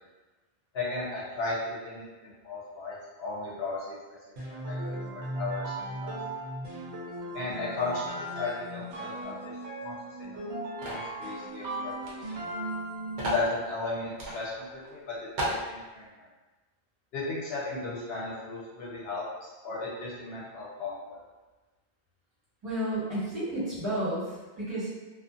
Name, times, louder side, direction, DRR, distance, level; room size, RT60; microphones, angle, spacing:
voice 1, 0.7-4.0 4.6-6.1 7.3-9.5 9.8-12.5 13.2-16.3 17.1-21.2, left 3 dB, 70° left, -6 dB, 0.9 m, -36 dB
sound 1, 4.4-13.5, right 1 dB, 80° right, 0.9 m, -37 dB
sound 2, 10.8-11.1 12.0-12.1 12.4-12.5 13.2-13.5 14.2-14.4 14.8-14.9 15.4-15.6, right 1 dB, 55° right, 0.7 m, -32 dB
voice 2, 22.6-24.9, right 1 dB, 25° right, -13 dB, 1.4 m, -32 dB
2.5 x 2.4 x 2.5 m, 1.2 s
omnidirectional pair, 1.1 m